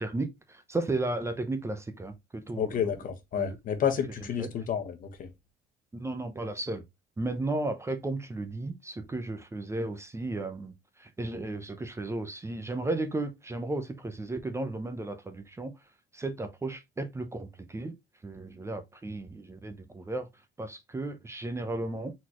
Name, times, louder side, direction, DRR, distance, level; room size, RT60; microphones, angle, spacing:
voice 1, 0.0-2.9 3.4-3.6 4.4-4.5 5.9-6.8 7.2-15.7 16.1-17.9 18.2-20.3 20.6-22.1, right 2 dB, 15° right, 0.7 m, -34 dB
voice 2, 2.6-5.3, left 8 dB, 55° left, 1.2 m, -30 dB
4.1 x 4.1 x 3.0 m
cardioid pair, 110°, 17 cm